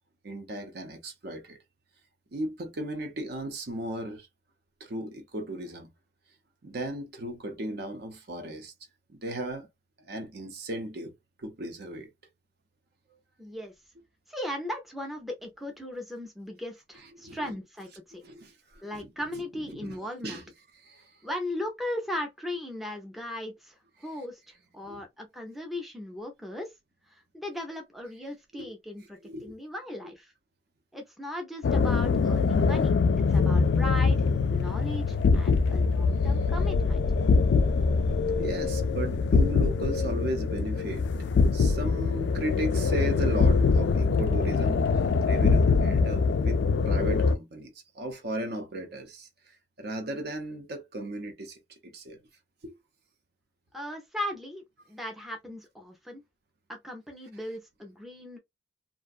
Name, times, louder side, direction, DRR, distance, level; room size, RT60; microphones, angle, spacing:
voice 1, 0.2-1.6 2.3-4.3 4.8-5.9 6.6-8.7 9.1-9.7 10.1-11.1 11.4-12.1 17.2-17.5 18.2-19.1 19.6-19.9 20.2-20.4 20.8-21.1 24.9-25.0 28.5-28.7 29.2-29.5 30.0-30.1 38.4-41.1 41.5-52.2 52.6-52.8, right 1 dB, 60° right, 0.7 m, -36 dB
voice 2, 13.4-13.7 14.3-18.2 18.8-20.4 21.2-23.8 24.0-26.7 27.1-30.3 30.9-32.9 33.3-37.1 53.7-54.6 54.9-56.2 56.7-58.4, left 1 dB, ahead, 0.5 m, -37 dB
sound 1, 31.6-47.4, left 4 dB, 70° left, 0.3 m, -24 dB
2.5 x 2.2 x 2.3 m
head